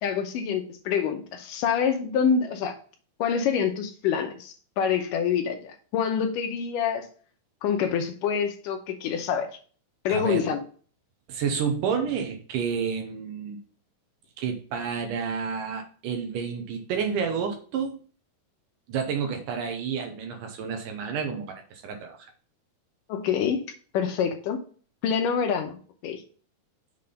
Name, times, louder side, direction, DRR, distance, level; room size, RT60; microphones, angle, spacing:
voice 1, 0.0-2.7 3.2-7.1 7.6-9.5 10.1-10.6 23.1-23.6 23.9-24.6 25.0-25.8 26.0-26.2, left 7 dB, 75° left, 2.1 m, -26 dB
voice 2, 10.1-10.5 11.3-13.6 14.4-18.0 18.9-22.2, right 6 dB, 75° right, 2.2 m, -30 dB
6.7 x 3.7 x 5.2 m
omnidirectional pair, 4.3 m